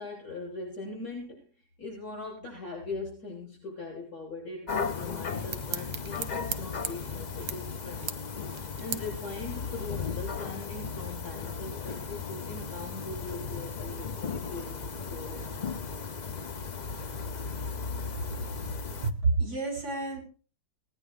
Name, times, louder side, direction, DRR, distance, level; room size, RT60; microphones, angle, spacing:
voice 1, 0.0-1.5 1.8-8.1 8.8-15.8, left 3 dB, 50° left, -5 dB, 8.0 m, -40 dB
sound 1, 4.7-19.1, left 5 dB, 80° left, 0.4 m, -36 dB
sound 2, 5.0-11.5, right 9 dB, 80° right, 1.9 m, -42 dB
voice 2, 19.0-20.2, right 3 dB, 45° right, 2 dB, 7.1 m, -28 dB
18.5 x 9.9 x 5.0 m, 0.38 s
omnidirectional pair, 2.2 m